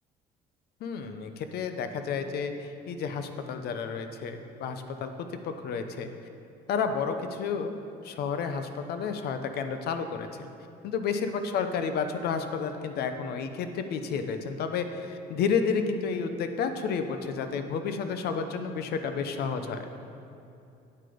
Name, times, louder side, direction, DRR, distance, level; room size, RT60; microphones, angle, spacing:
voice 1, 0.8-6.1 6.7-7.8 8.0-10.3 10.8-19.9, left 5 dB, 70° left, 8 dB, 0.8 m, -31 dB
9.0 x 7.6 x 5.1 m, 2.7 s
cardioid pair, 110°, 17 cm